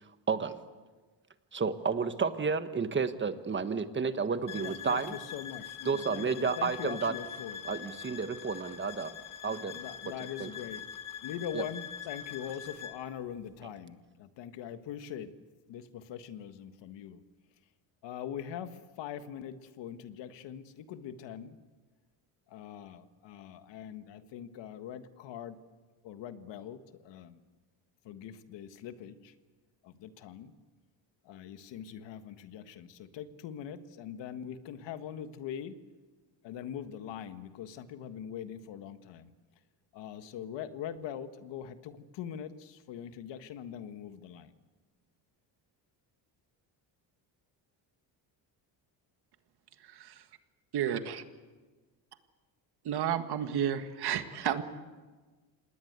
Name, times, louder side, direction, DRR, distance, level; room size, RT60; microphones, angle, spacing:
voice 1, 1.5-5.1 5.8-7.1 7.6-9.1 9.4-9.8 10.4-10.5 11.5-11.6, right 5 dB, 25° right, 10 dB, 1.4 m, -31 dB
sound 1, 4.5-13.0, left 8 dB, 45° left, 3.0 m, -43 dB
voice 2, 4.6-7.7 9.7-10.8 11.2-15.3 15.7-17.2 18.0-21.6 22.5-25.6 26.0-27.4 28.0-29.3 29.8-30.5 31.2-35.8 36.4-39.3 39.9-44.5, left 9 dB, 75° left, 10 dB, 1.6 m, -42 dB
voice 3, 50.7-51.2 52.9-54.6, right 9 dB, 60° right, 8 dB, 1.8 m, -31 dB
27.0 x 19.5 x 8.1 m, 1.3 s
cardioid pair, 125°, 43 cm